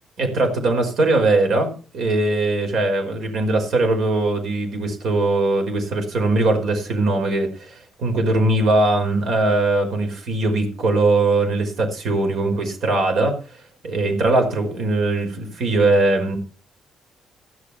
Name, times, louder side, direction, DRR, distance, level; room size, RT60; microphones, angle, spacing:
voice 1, 0.2-13.3 13.8-16.4, right 2 dB, 70° right, 4 dB, 5.1 m, -20 dB
15.5 x 6.9 x 7.2 m, 0.39 s
cardioid pair, 90°, 0 cm